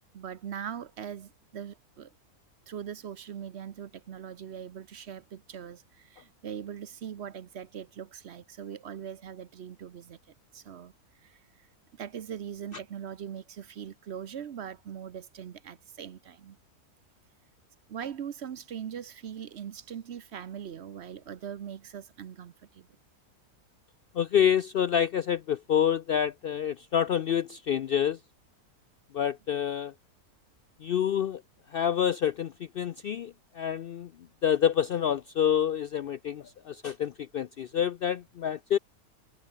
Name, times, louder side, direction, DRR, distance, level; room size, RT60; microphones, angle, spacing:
voice 1, 0.1-2.1 2.7-10.9 11.2-11.7 11.9-16.6 17.9-22.9, right 8 dB, 55° right, 0.9 m, -41 dB
voice 2, 24.1-28.2 29.1-29.9 30.8-31.4 31.7-34.1 34.4-38.8, left 9 dB, 90° left, 0.5 m, -27 dB
omnidirectional pair, 1.6 m